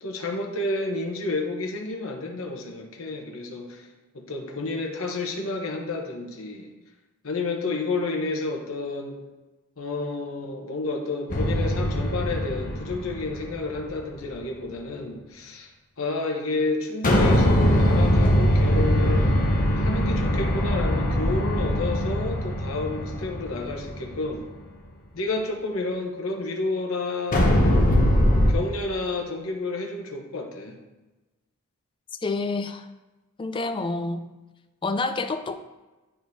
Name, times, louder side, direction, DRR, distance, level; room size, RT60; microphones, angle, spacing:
voice 1, 0.0-3.9 4.1-6.7 7.2-9.2 9.8-15.7 16.0-19.3 19.8-24.4 25.1-28.0 28.5-30.8, left 3 dB, 65° left, 2 dB, 1.0 m, -30 dB
sound 1, 11.3-13.8 17.0-24.3 27.3-28.5, equal, 40° left, 1.0 m, -22 dB
voice 2, 32.2-32.8 33.4-34.3 34.8-35.6, left 3 dB, 25° left, 9 dB, 0.4 m, -28 dB
10.0 x 4.7 x 2.7 m, 1.1 s
head